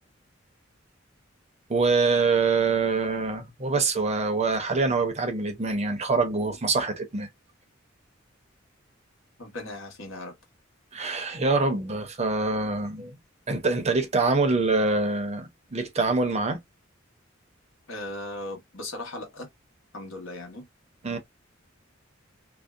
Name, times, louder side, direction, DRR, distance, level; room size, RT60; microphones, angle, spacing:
voice 1, 1.7-7.3 10.9-13.1 13.5-16.6 21.0-21.2, right 3 dB, 35° right, 0.6 m, -25 dB
voice 2, 9.4-10.3 17.9-19.5 19.9-20.7 21.1-21.2, left 2 dB, 75° left, 1.1 m, -37 dB
2.6 x 2.1 x 2.3 m
head